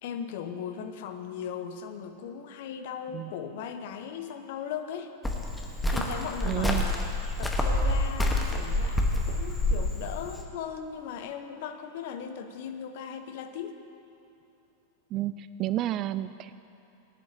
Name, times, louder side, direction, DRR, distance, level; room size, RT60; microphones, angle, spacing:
voice 1, 0.0-5.1 5.9-7.0 7.4-13.8, left 7 dB, 50° left, 7 dB, 0.8 m, -38 dB
Cricket, 5.2-10.4, left 1 dB, 5° left, 1.2 m, -27 dB
voice 2, 6.4-6.9 15.1-16.6, right 13 dB, 35° right, 14 dB, 0.3 m, -31 dB
19.0 x 10.5 x 2.8 m, 2.8 s
figure-of-eight pair, 90°, 0 cm